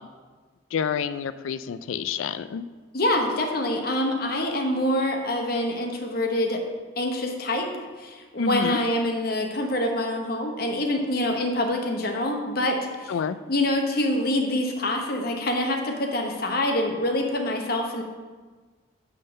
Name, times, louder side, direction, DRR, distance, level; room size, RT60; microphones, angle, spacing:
voice 1, 0.7-2.6 8.4-8.8 13.1-13.4, left 7 dB, 85° left, 14 dB, 0.3 m, -28 dB
voice 2, 2.9-6.7 7.0-7.7 8.0-13.1 13.5-18.0, left 1 dB, 50° left, 2 dB, 1.0 m, -25 dB
7.7 x 3.9 x 6.4 m, 1.4 s
head